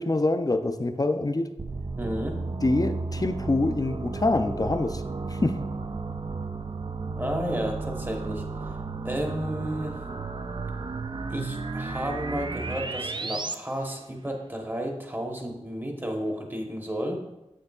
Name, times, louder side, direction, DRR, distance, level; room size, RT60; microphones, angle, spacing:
voice 1, 0.0-1.5 2.6-5.0 5.3-5.6, left 2 dB, 35° left, 8 dB, 0.4 m, -25 dB
sound 1, 1.6-13.6, right 3 dB, 45° right, 0.3 m, -33 dB
voice 2, 2.0-2.4 7.2-8.4 9.0-10.0 11.3-17.2, equal, 15° right, 2 dB, 1.0 m, -32 dB
7.6 x 6.6 x 2.3 m, 0.95 s
wide cardioid pair, 55°, 11 cm